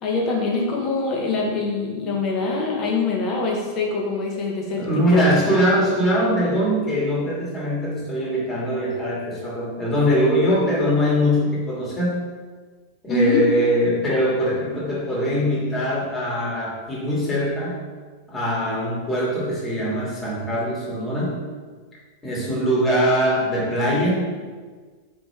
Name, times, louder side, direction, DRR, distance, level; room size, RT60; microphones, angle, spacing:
voice 1, 0.0-4.8 5.1-5.2 13.1-13.4, left 3 dB, 35° left, 0 dB, 0.8 m, -23 dB
voice 2, 4.8-12.2 13.0-17.8 18.3-21.4 22.2-24.3, equal, 15° left, -6 dB, 1.5 m, -22 dB
4.4 x 3.0 x 3.2 m, 1.5 s
figure-of-eight pair, 90°, 0 cm